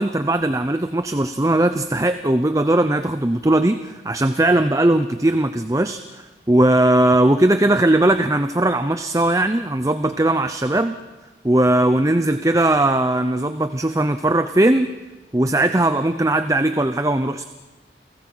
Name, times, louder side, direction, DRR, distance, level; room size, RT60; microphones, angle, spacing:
voice 1, 0.0-11.0 11.4-14.9 15.3-17.4, right 1 dB, 20° right, 9 dB, 0.7 m, -19 dB
29.0 x 18.0 x 7.8 m, 1.2 s
head